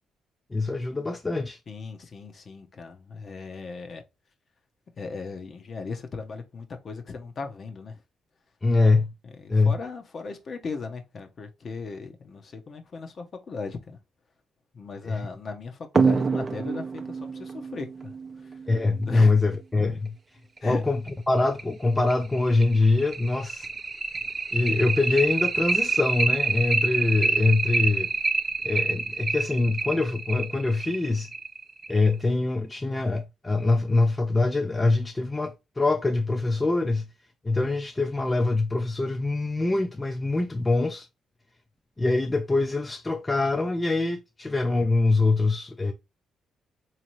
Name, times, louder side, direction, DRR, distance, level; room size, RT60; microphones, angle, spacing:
voice 1, 0.5-1.6 8.6-9.1 9.5-9.7 15.0-15.3 18.7-20.1 20.6-21.0 21.3-23.7 24.5-28.1 28.6-31.3 31.9-37.0 37.4-41.1 42.0-45.9, left 3 dB, 20° left, 0.4 m, -24 dB
voice 2, 1.7-4.0 5.0-8.0 9.2-14.0 14.7-18.1 18.5-18.6 19.1-19.4 20.6-20.8, left 4 dB, 45° left, 0.8 m, -37 dB
sound 1, 15.9-19.1 20.6-20.7 21.1-21.2 21.6-21.7 22.1-32.1, right 4 dB, 35° right, 0.5 m, -27 dB
3.6 x 2.9 x 3.0 m
cardioid pair, 90°, 0 cm